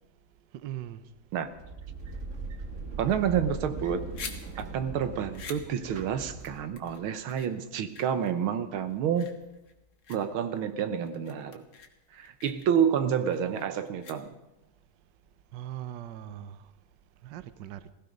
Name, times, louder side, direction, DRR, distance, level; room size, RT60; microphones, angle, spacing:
voice 1, 0.5-1.0 15.5-16.7 17.2-17.8, right 12 dB, 65° right, 1.3 m, -40 dB
sound 1, 1.4-7.0, right 4 dB, 40° right, 1.4 m, -40 dB
voice 2, 3.0-4.1 4.6-9.4 10.1-11.6 12.1-14.4, right 8 dB, 85° right, 1.8 m, -29 dB
sound 2, 3.8-14.7, left 6 dB, 60° left, 2.0 m, -48 dB
16.5 x 16.0 x 5.3 m
omnidirectional pair, 2.3 m